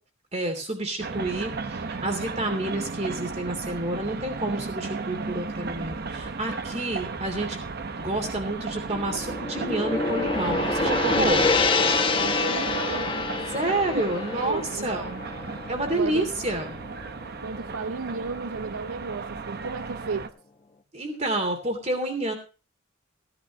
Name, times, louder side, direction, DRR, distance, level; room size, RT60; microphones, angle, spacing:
voice 1, 0.3-7.6 8.0-11.4 13.5-15.0 15.7-16.8 20.9-22.3, right 1 dB, 30° right, 2.9 m, -29 dB
sound 1, 1.0-20.3, right 4 dB, 45° right, 0.8 m, -34 dB
sound 2, 5.6-11.7, equal, 5° right, 2.1 m, -46 dB
Gong, 8.9-17.2, left 4 dB, 25° left, 1.1 m, -27 dB
voice 2, 12.2-13.2 14.1-15.3 15.9-16.3 17.4-20.3, right 4 dB, 85° right, 0.7 m, -34 dB
16.0 x 11.0 x 3.1 m
head